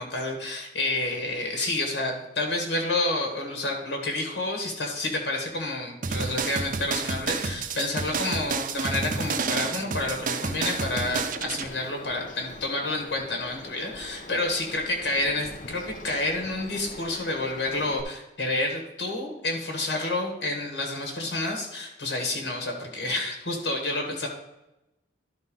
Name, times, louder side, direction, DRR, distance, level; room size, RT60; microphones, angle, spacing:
voice 1, 0.0-24.3, left 2 dB, 70° left, 2 dB, 1.6 m, -29 dB
sound 1, 6.0-11.7, right 4 dB, 45° right, 0.6 m, -30 dB
Bird vocalization bird call bird song, 9.4-18.0, left 2 dB, 45° left, 0.7 m, -43 dB
11.5 x 4.0 x 5.4 m, 0.94 s
head